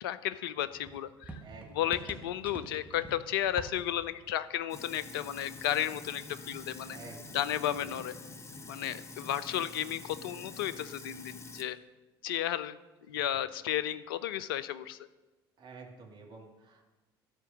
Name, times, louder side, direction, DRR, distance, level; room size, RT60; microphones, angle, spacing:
voice 1, 0.0-1.4 1.7-7.0 7.3-8.1 8.7-11.8 12.2-12.8 13.1-15.0, left 11 dB, 65° left, 15 dB, 0.4 m, -33 dB
sound 1, 0.6-6.1 6.4-8.0, right 3 dB, 10° right, 1.3 m, -49 dB
voice 2, 1.4-2.4 6.9-7.5 7.7-8.1 15.6-16.8, right 4 dB, 40° right, 0 dB, 2.0 m, -50 dB
Sink (filling or washing), 4.7-11.6, left 3 dB, 20° left, 0.8 m, -47 dB
12.5 x 4.6 x 6.2 m, 1.2 s
figure-of-eight pair, 60°, 12 cm